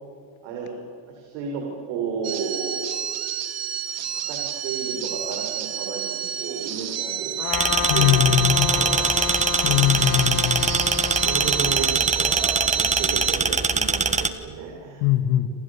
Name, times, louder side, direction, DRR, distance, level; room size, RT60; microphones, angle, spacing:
voice 1, 0.4-0.8 1.1-2.9 3.7-7.4 7.7-8.4 8.7-9.3 9.9-10.4 11.2-15.0 15.4-15.5, right 5 dB, 80° right, 0 dB, 6.4 m, -33 dB
sound 1, 2.2-13.4, right 9 dB, 35° right, 1.5 m, -30 dB
Trumpet, 7.4-11.9, left 7 dB, 50° left, 2.4 m, -30 dB
sound 2, 7.5-14.3, right 4 dB, 15° right, 1.3 m, -23 dB
voice 2, 7.9-8.8 9.6-10.8 15.0-15.5, left 12 dB, 75° left, 9 dB, 1.9 m, -21 dB
28.5 x 27.5 x 7.3 m, 2.2 s
cardioid pair, 150°, 45 cm